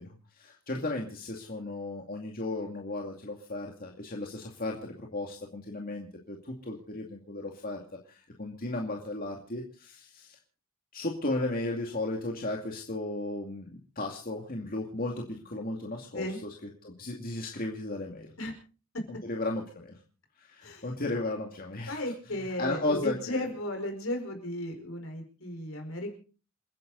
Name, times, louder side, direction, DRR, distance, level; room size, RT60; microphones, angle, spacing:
voice 1, 0.0-10.4 10.9-16.3 16.8-18.3 19.1-20.0 20.4-22.0 22.6-23.5, left 2 dB, 40° left, 1 dB, 2.4 m, -35 dB
voice 2, 21.9-26.2, left 1 dB, 70° left, 5 dB, 4.8 m, -35 dB
29.0 x 10.5 x 4.0 m, 0.38 s
head